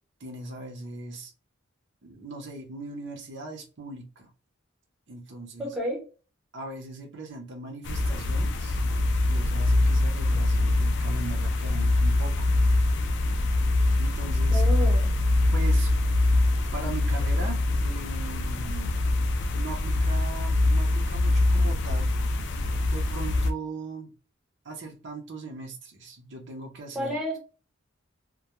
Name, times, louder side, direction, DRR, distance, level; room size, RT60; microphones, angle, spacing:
voice 1, 0.2-1.3 2.0-4.3 5.1-5.7 6.5-8.8 9.2-12.5 14.0-14.6 15.5-15.9 16.7-19.0 19.5-22.1 22.9-24.1 24.6-27.2, right 2 dB, 60° right, 0.6 m, -39 dB
voice 2, 5.6-6.0 14.5-15.1 26.9-27.4, equal, ahead, 0.7 m, -30 dB
sound 1, 7.8-23.5, left 2 dB, 55° left, 0.3 m, -24 dB
2.2 x 2.1 x 2.9 m
head